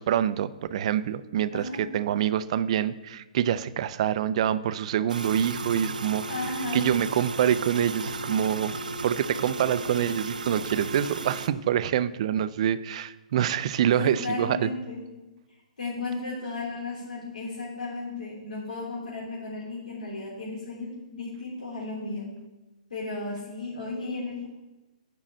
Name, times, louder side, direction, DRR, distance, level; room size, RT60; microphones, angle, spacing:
voice 1, 0.0-6.2 6.7-8.8 9.0-14.7, right 10 dB, 50° right, 15 dB, 0.5 m, -26 dB
voice 2, 1.5-1.8 6.3-6.9 13.9-15.1 15.8-22.3 22.9-24.5, left 3 dB, 80° left, -6 dB, 3.4 m, -34 dB
sound 1, 5.1-11.5, right 2 dB, 85° right, 0.7 m, -34 dB
7.3 x 6.3 x 7.7 m, 1.1 s
hypercardioid pair, 135°, 4 cm